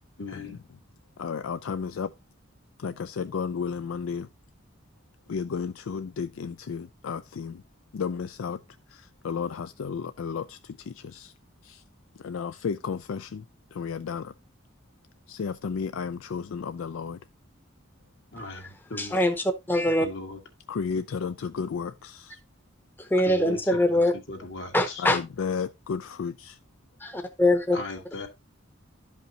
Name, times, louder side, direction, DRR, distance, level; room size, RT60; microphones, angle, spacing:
voice 1, 0.2-0.6 18.3-19.1 20.0-20.4 23.3-24.0 24.3-25.0 27.7-28.3, left 2 dB, 60° left, 2.0 m, -38 dB
voice 2, 1.2-2.1 2.8-4.3 5.3-7.6 7.9-8.6 8.9-10.6 10.9-11.3 11.6-11.8 12.2-13.4 13.7-14.3 15.3-17.2 20.7-22.4 25.0-26.6, left 6 dB, 80° left, 0.4 m, -33 dB
voice 3, 18.5-20.1 23.0-24.1 24.7-25.2 27.0-27.8, left 1 dB, 10° left, 0.8 m, -23 dB
12.0 x 5.4 x 2.8 m
head